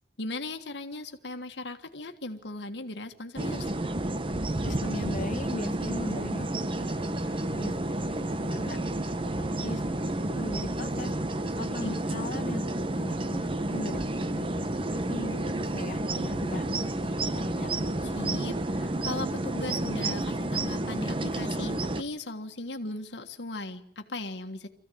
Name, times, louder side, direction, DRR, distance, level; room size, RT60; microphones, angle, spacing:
voice 1, 0.2-3.7 11.8-12.0 18.0-24.7, left 2 dB, 75° left, 5 dB, 1.6 m, -38 dB
sound 1, 3.4-22.0, right 1 dB, 30° right, 1.0 m, -30 dB
voice 2, 4.6-6.5 6.8-7.8 8.0-8.8 9.6-9.8 10.2-11.1 11.6-12.6 13.0-16.7 17.0-17.7, left 1 dB, 50° left, 3 dB, 1.8 m, -39 dB
25.5 x 15.5 x 9.3 m, 0.77 s
head